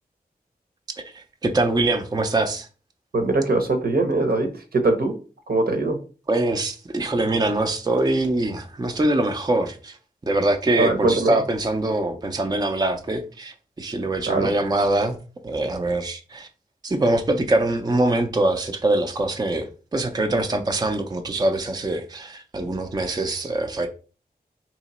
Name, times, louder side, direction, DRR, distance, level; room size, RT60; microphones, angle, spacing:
voice 1, 1.0-2.7 6.3-10.0 10.2-15.2 15.4-16.5 16.8-23.9, right 2 dB, 25° right, 0.4 m, -23 dB
voice 2, 3.1-5.1 5.5-6.0 10.8-11.3 14.3-14.5, right 2 dB, 75° right, 0.8 m, -21 dB
3.0 x 2.9 x 4.1 m
wide cardioid pair, 75°, 16 cm